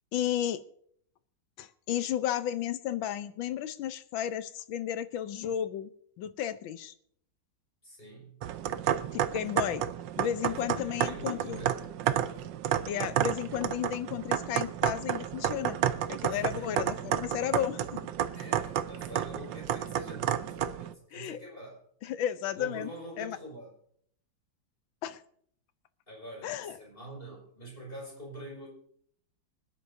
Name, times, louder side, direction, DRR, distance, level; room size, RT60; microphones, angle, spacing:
voice 1, 0.1-0.6 1.6-5.9 6.2-6.9 9.1-9.8 10.2-11.6 12.9-15.8 16.1-18.0 21.1-21.4 22.0-22.9 23.2-23.4 25.0-25.2 26.4-26.8, left 10 dB, 85° left, 13 dB, 1.5 m, -33 dB
voice 2, 7.8-8.4 10.4-11.8 12.1-12.4 16.3-17.3 18.3-21.8 22.6-23.7 26.1-28.7, right 1 dB, 25° left, -2 dB, 5.7 m, -45 dB
sound 1, 8.4-20.9, right 10 dB, 75° right, 1.3 m, -31 dB
25.0 x 10.0 x 2.7 m, 0.64 s
omnidirectional pair, 2.1 m